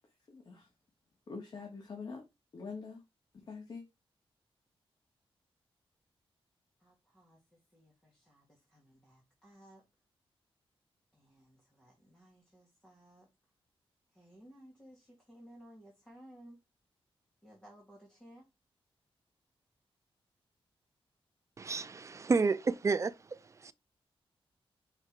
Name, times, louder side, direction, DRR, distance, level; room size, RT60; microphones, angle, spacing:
voice 1, 0.3-0.7 1.3-2.2 2.5-3.0 3.3-3.8, left 4 dB, 45° left, 1.4 m, -44 dB
voice 2, 6.8-9.8 11.1-13.3 14.1-16.6 17.4-18.4, equal, 10° left, 2.2 m, -58 dB
voice 3, 21.6-23.7, right 4 dB, 30° right, 0.4 m, -31 dB
5.8 x 3.8 x 4.6 m
wide cardioid pair, 165°, 10 cm